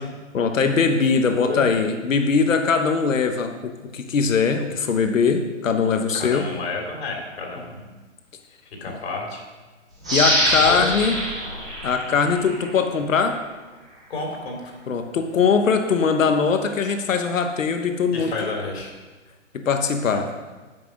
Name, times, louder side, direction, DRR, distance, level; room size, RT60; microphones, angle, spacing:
voice 1, 0.3-6.5 10.1-11.2 11.8-13.4 14.9-18.3 19.5-20.3, left 5 dB, 85° left, 6 dB, 1.2 m, -21 dB
voice 2, 1.3-1.6 6.1-7.9 8.8-9.4 10.7-10.9 14.1-14.7 18.1-18.9 20.1-20.3, left 3 dB, 55° left, 0 dB, 3.0 m, -31 dB
sound 1, 10.0-12.7 13.2-13.3, equal, 5° right, 0.4 m, -24 dB
9.3 x 6.1 x 6.3 m, 1.3 s
hypercardioid pair, 160°, 38 cm